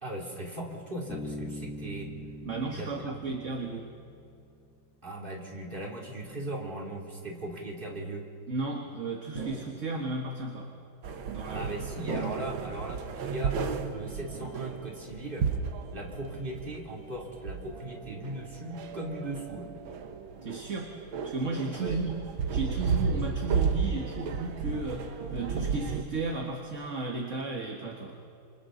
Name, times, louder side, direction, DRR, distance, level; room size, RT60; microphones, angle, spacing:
voice 1, 0.0-2.1 2.7-3.3 5.0-8.2 11.5-15.5 15.9-19.7 21.7-22.0, right 1 dB, 25° right, -2 dB, 3.2 m, -38 dB
Bass guitar, 1.1-4.6, left 1 dB, 35° left, 2.3 m, -42 dB
voice 2, 2.4-3.9 8.5-10.7 11.3-11.7 20.4-20.9 21.2-22.2 22.5-28.2, right 3 dB, 40° right, 2 dB, 1.7 m, -34 dB
sound 1, 9.4-10.2 11.0-11.6 12.1-12.9 13.4-14.0 14.3-15.1 15.4-15.8 16.2-16.8, right 4 dB, 65° right, 2.8 m, -41 dB
sound 2, 11.0-26.0, right 6 dB, 80° right, 1.9 m, -34 dB
28.0 x 25.5 x 3.9 m, 2.6 s
omnidirectional pair, 2.2 m